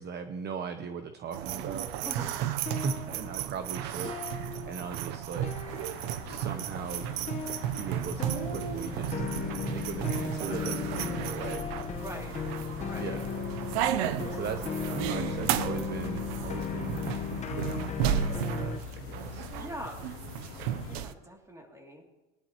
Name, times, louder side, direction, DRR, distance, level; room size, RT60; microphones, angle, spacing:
voice 1, 0.0-1.9 2.4-5.7 6.2-7.2 7.6-9.2 9.7-11.7 12.5-12.6 13.0-13.3 14.3-19.5, right 6 dB, 35° right, 8 dB, 0.8 m, -39 dB
sound 1, 1.3-21.1, right 11 dB, 80° right, 0.8 m, -34 dB
voice 2, 2.0-2.3 12.0-12.4 12.8-13.1 14.2-14.6 19.6-20.1 20.9-22.1, equal, 10° right, 1 dB, 2.8 m, -43 dB
sound 2, 2.5-5.1 5.4-6.4 7.3-18.8, left 6 dB, 20° left, 1.1 m, -37 dB
sound 3, 5.7-21.0, left 14 dB, 45° left, 0.5 m, -44 dB
22.0 x 11.0 x 3.0 m, 1.1 s
supercardioid pair, 130°, 30 cm